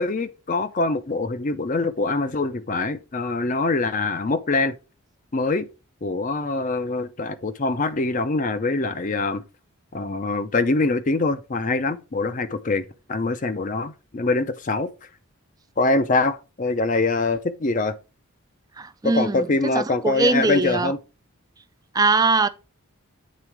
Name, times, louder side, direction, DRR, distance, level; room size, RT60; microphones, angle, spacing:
voice 1, 0.0-4.8 5.3-5.7 6.0-9.4 9.9-14.9 15.8-18.0 19.0-21.0, left 3 dB, 35° left, 0.5 m, -24 dB
voice 2, 18.8-19.5 19.7-20.9 21.9-22.5, right 3 dB, 15° right, 0.3 m, -21 dB
7.4 x 3.6 x 4.6 m
head